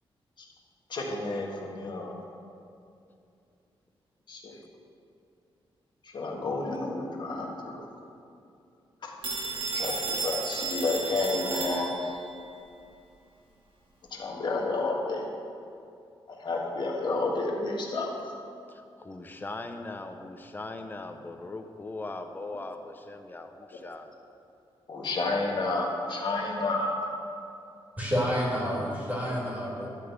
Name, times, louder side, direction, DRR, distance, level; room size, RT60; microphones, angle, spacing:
voice 1, 0.9-2.2 4.3-4.6 6.0-7.9 9.0-9.1 9.7-12.2 14.1-15.2 16.3-18.1 24.9-27.1, left 3 dB, 50° left, -1 dB, 1.6 m, -30 dB
Telephone, 9.2-12.2, right 3 dB, 60° right, 1.5 m, -33 dB
voice 2, 18.7-24.1, left 2 dB, 20° left, 6 dB, 0.6 m, -40 dB
voice 3, 28.0-29.9, equal, 15° right, -5 dB, 2.3 m, -29 dB
12.0 x 4.2 x 8.0 m, 2.6 s
wide cardioid pair, 145°, 10 cm